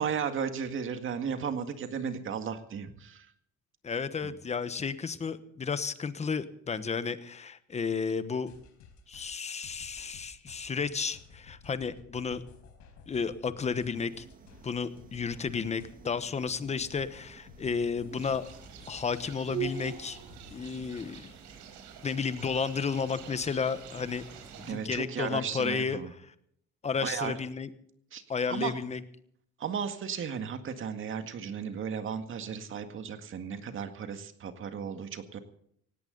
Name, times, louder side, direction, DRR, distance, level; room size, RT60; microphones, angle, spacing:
voice 1, 0.0-3.3 4.2-4.3 24.7-26.1 27.0-27.4 28.1-28.2 28.5-28.7 29.6-35.4, right 7 dB, 45° right, 8 dB, 1.9 m, -35 dB
voice 2, 3.8-8.5 9.1-12.4 13.1-14.2 14.6-18.5 18.9-20.2 20.5-21.3 22.0-24.2 24.6-26.0 26.8-27.7 28.3-29.0, left 5 dB, 25° left, 13 dB, 1.1 m, -32 dB
sound 1, 8.3-21.0, left 5 dB, 80° left, 4.4 m, -55 dB
sound 2, 13.9-25.1, right 9 dB, 30° right, 1.6 m, -46 dB
sound 3, 18.1-24.7, right 8 dB, 85° right, 4.5 m, -50 dB
17.5 x 17.5 x 4.0 m, 0.68 s
cardioid pair, 145°, 29 cm